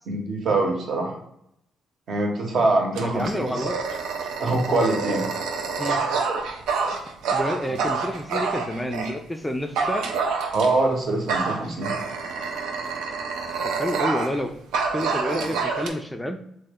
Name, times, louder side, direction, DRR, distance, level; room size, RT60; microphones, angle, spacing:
voice 1, 0.1-1.2 2.1-3.7 4.4-5.3 7.7-7.8 10.5-11.9, right 2 dB, 60° right, 1 dB, 0.9 m, -24 dB
Dog, 2.9-9.2 9.8-10.9 11.3-14.4 14.7-15.9, right 4 dB, 90° right, 0.4 m, -27 dB
voice 2, 3.0-3.8 5.8-6.1 7.3-10.1 13.6-14.5 14.9-16.4, left 1 dB, 5° left, 5 dB, 0.3 m, -29 dB
3.1 x 2.1 x 3.5 m, 0.76 s
cardioid pair, 90°, 0 cm